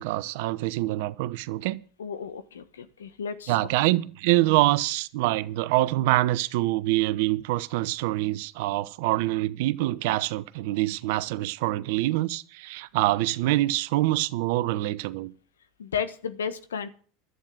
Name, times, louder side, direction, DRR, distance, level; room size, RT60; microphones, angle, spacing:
voice 1, 0.0-1.8 3.5-15.3, right 17 dB, 65° right, 0.8 m, -25 dB
voice 2, 2.0-3.5 15.8-16.9, left 7 dB, 85° left, 1.3 m, -33 dB
11.5 x 9.2 x 7.8 m
hypercardioid pair, 85°, 0 cm